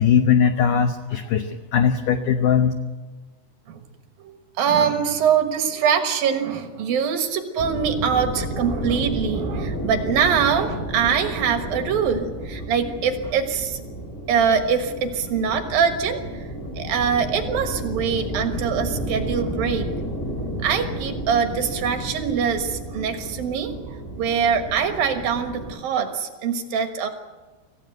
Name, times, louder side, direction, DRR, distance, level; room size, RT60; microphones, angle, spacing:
voice 1, 0.0-2.7, left 7 dB, 80° left, 7 dB, 1.9 m, -19 dB
voice 2, 4.2-13.8 14.3-16.5 16.7-19.9 20.6-27.1, right 7 dB, 65° right, 6 dB, 2.8 m, -23 dB
sound 1, 7.6-25.7, right 1 dB, 5° left, 3.3 m, -31 dB
25.5 x 15.5 x 8.0 m, 1.3 s
omnidirectional pair, 5.1 m